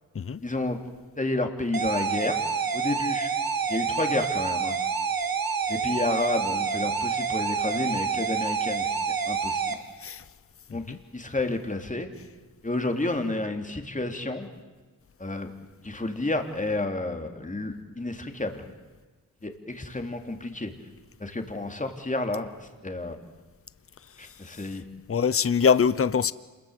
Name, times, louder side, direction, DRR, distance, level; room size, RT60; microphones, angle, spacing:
voice 1, 0.4-0.8 1.2-2.4 2.7-3.3 3.7-4.7 5.7-9.0 9.2-9.8 10.7-12.1 12.6-14.5 15.2-15.5 15.8-18.6 19.4-20.7 21.2-23.3 24.2-24.8, left 2 dB, 20° left, 3.0 m, -30 dB
sound 1, 1.7-9.7, right 5 dB, 75° right, 1.9 m, -28 dB
voice 2, 24.1-24.7 25.1-26.3, left 6 dB, 40° left, 0.8 m, -24 dB
27.5 x 21.0 x 8.1 m
cardioid pair, 75°, 35 cm